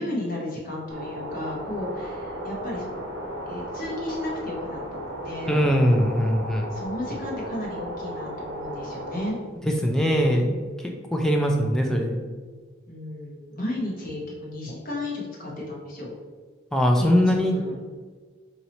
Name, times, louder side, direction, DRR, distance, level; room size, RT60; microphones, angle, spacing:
voice 1, 0.0-3.0 3.5-5.5 6.7-9.4 12.9-16.1 17.0-17.8, left 1 dB, 45° left, -4 dB, 0.9 m, -33 dB
sound 1, 0.9-9.3, right 1 dB, 85° right, 0.8 m, -35 dB
voice 2, 5.5-6.7 9.6-10.5 10.8-12.2 16.7-17.5, equal, 5° left, 1 dB, 0.3 m, -21 dB
2.9 x 2.8 x 4.1 m, 1.5 s
head